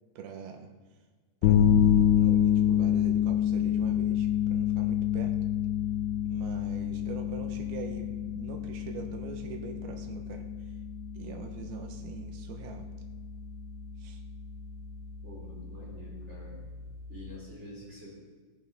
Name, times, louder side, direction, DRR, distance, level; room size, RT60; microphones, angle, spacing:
voice 1, 0.2-0.7 1.4-5.3 6.2-10.5 11.1-12.9 14.0-14.2, right 6 dB, 75° right, 4 dB, 2.9 m, -42 dB
sound 1, 1.4-17.3, left 10 dB, 85° left, 3.0 m, -28 dB
voice 2, 15.2-16.6 17.1-18.1, left 1 dB, 20° right, -4 dB, 2.9 m, -46 dB
21.0 x 9.2 x 3.6 m, 1.4 s
omnidirectional pair, 4.7 m